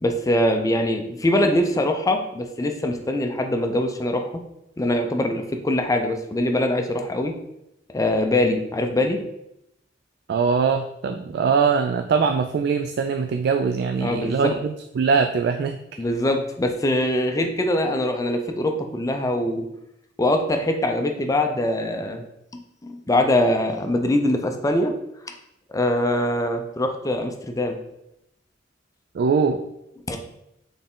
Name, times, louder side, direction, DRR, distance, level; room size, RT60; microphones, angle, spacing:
voice 1, 0.0-4.3 4.8-7.3 7.9-9.2 14.0-14.5 16.0-19.7 20.2-22.2 22.8-24.9 25.7-27.8 30.1-30.2, left 1 dB, 20° left, 5 dB, 0.5 m, -23 dB
voice 2, 10.3-15.8 29.2-29.6, right 5 dB, 60° right, 5 dB, 0.3 m, -22 dB
4.2 x 3.4 x 3.7 m, 0.83 s
head